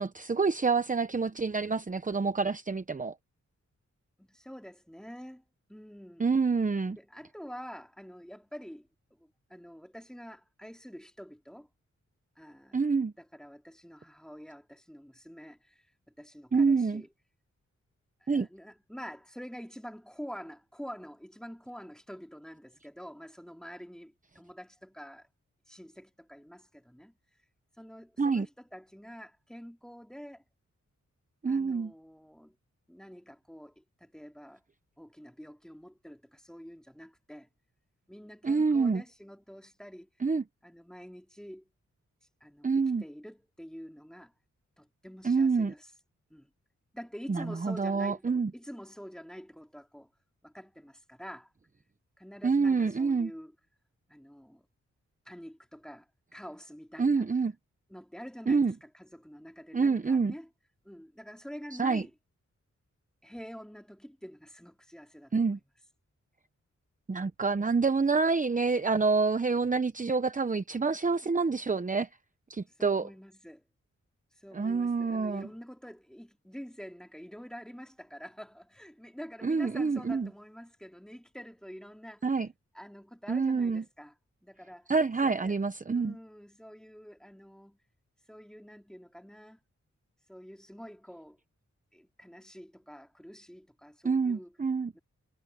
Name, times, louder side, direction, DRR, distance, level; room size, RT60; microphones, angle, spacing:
voice 1, 0.0-3.1 6.2-7.0 12.7-13.1 16.5-17.0 18.3-18.5 28.2-28.5 31.4-31.9 38.4-39.0 40.2-40.4 42.6-43.0 45.2-45.7 47.3-48.5 52.4-53.3 57.0-57.5 58.5-58.7 59.7-60.3 61.8-62.0 65.3-65.6 67.1-72.1 72.5-73.1 74.5-75.5 79.4-80.3 82.2-82.5 83.3-83.8 84.9-86.2 94.0-94.9, right 4 dB, 25° right, 0.9 m, -27 dB
voice 2, 4.2-5.4 5.7-6.3 6.9-8.9 9.2-11.7 12.4-12.8 13.2-15.9 16.2-17.1 18.2-25.3 25.7-27.1 27.8-30.4 31.5-32.5 32.9-34.6 35.0-37.5 38.1-40.1 40.6-41.7 42.4-44.3 44.8-45.9 46.3-46.5 46.9-50.1 50.4-51.5 52.2-53.5 54.1-54.7 55.3-57.3 57.9-60.5 60.8-62.1 63.2-65.6 72.8-73.6 74.4-82.3 82.7-84.1 84.4-84.9 85.2-85.6 85.9-87.8 88.3-89.6 90.3-91.4 91.9-94.5 94.9-95.0, equal, ahead, 3.7 m, -47 dB
cardioid pair, 60°, 29 cm